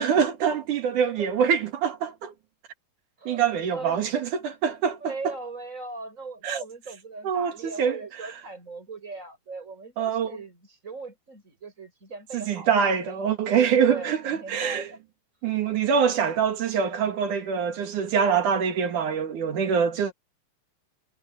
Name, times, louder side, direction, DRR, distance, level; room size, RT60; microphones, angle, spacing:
voice 1, 0.0-2.3 3.3-5.1 6.4-6.6 7.2-8.3 10.0-10.4 12.3-14.9 15.4-20.1, right 7 dB, 80° right, 3.5 m, -24 dB
voice 2, 3.7-4.1 5.0-13.3 13.9-15.0 15.9-16.1, right 3 dB, 25° right, 7.3 m, -39 dB
omnidirectional pair, 3.6 m